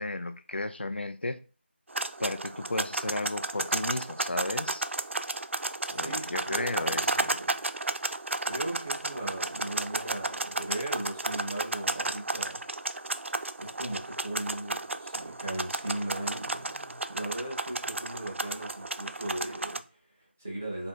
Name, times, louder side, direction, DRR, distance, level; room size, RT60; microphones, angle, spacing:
voice 1, 0.0-1.4 2.2-4.8 5.9-7.3, left 2 dB, 60° left, 0.5 m, -34 dB
sound 1, 1.9-19.8, right 2 dB, 85° right, 0.4 m, -33 dB
voice 2, 5.9-7.6 8.4-12.6 13.6-20.9, right 1 dB, 10° right, 0.4 m, -38 dB
4.6 x 2.5 x 4.5 m
figure-of-eight pair, 175°, 6 cm